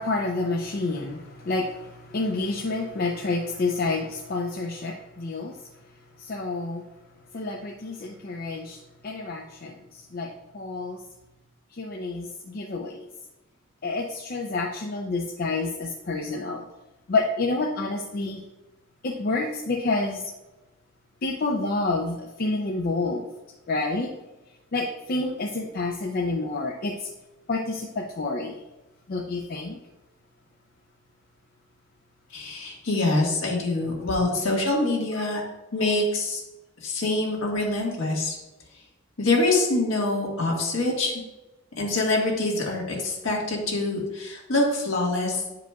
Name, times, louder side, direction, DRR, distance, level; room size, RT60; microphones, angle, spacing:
voice 1, 0.0-5.7 6.2-6.8 7.3-11.0 11.7-13.1 13.8-16.6 17.1-18.4 19.0-20.3 21.2-23.3 23.7-24.1 24.7-27.1 27.5-28.6 29.1-29.8 33.9-34.1, left 3 dB, 45° left, 0 dB, 0.5 m, -29 dB
voice 2, 32.3-35.4 35.7-36.4 36.8-38.4 39.2-41.1 41.8-45.4, left 2 dB, 70° left, -1 dB, 1.6 m, -25 dB
9.0 x 4.9 x 2.3 m, 1.0 s
head